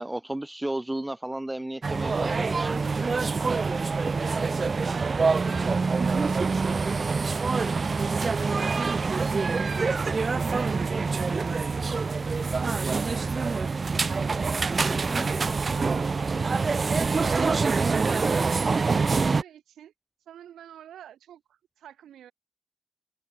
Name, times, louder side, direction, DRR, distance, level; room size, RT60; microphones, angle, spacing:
voice 1, 0.0-2.8 14.9-15.3, right 1 dB, 15° right, 1.3 m, -33 dB
sound 1, 1.8-19.4, right 4 dB, 45° right, 0.3 m, -25 dB
voice 2, 4.5-5.2 5.9-6.9 7.6-10.1 10.5-13.6 13.9-16.6 17.2-18.0 18.3-19.9 20.3-22.3, right 10 dB, 90° right, 2.6 m, -47 dB
cardioid pair, 60°, 0 cm